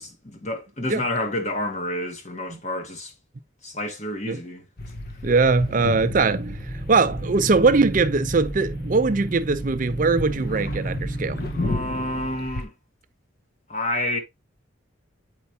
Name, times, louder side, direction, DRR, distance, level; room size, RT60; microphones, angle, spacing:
voice 1, 0.0-3.1 3.6-4.6 11.4-12.7 13.7-14.2, left 1 dB, 35° left, 1.3 m, -29 dB
sound 1, 4.8-12.7, left 1 dB, 50° left, 0.8 m, -33 dB
voice 2, 5.2-6.6 6.9-11.4, right 4 dB, 40° right, 0.5 m, -21 dB
sound 2, 5.7-11.8, right 1 dB, 15° right, 0.9 m, -33 dB
8.1 x 4.6 x 2.7 m
head